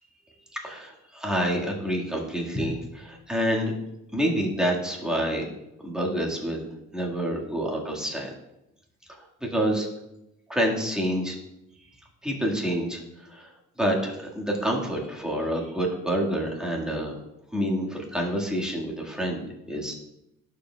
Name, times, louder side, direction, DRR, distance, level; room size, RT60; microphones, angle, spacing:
voice 1, 0.5-3.7 4.1-5.5 5.8-6.7 6.9-8.3 9.4-9.9 10.5-11.4 12.2-13.0 13.3-13.5 13.8-17.2 17.5-19.9, equal, ahead, -2 dB, 1.7 m, -27 dB
11.5 x 4.9 x 2.3 m, 0.88 s
cardioid pair, 90°, 30 cm